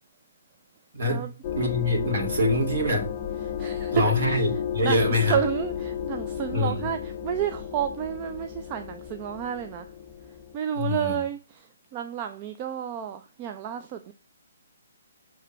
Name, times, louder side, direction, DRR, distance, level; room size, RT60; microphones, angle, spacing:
voice 1, 0.9-3.1 3.9-5.4 6.5-6.9 10.8-11.2, left 1 dB, 50° right, 2.3 m, -25 dB
sound 1, 1.4-10.6, left 9 dB, 35° left, 0.4 m, -33 dB
voice 2, 3.6-4.5 4.8-9.9 10.5-11.7 11.9-14.1, right 9 dB, 30° right, 0.5 m, -30 dB
6.5 x 3.4 x 5.4 m
figure-of-eight pair, 130°, 0 cm